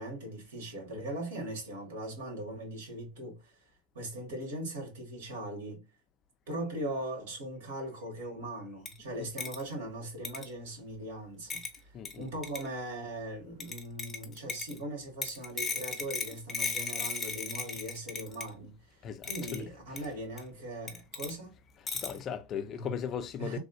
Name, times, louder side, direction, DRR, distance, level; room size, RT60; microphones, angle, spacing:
voice 1, 0.0-3.7 3.9-5.8 6.5-21.5 22.7-22.9 23.4-23.6, right 1 dB, 70° right, 1.7 m, -40 dB
sound 1, 8.9-9.0 9.4-9.6 10.2-10.5 11.5-11.8 12.1-12.2 12.4-12.7 13.6-14.8 15.2-18.5 19.2-19.6 20.0-20.1 20.4-20.5 20.9-21.3 21.9-22.2, left 5 dB, 25° left, 0.9 m, -36 dB
voice 2, 11.9-12.3 19.0-20.0 21.9-23.6, left 8 dB, 40° left, 0.4 m, -38 dB
3.3 x 2.6 x 2.3 m
hypercardioid pair, 90°, 0 cm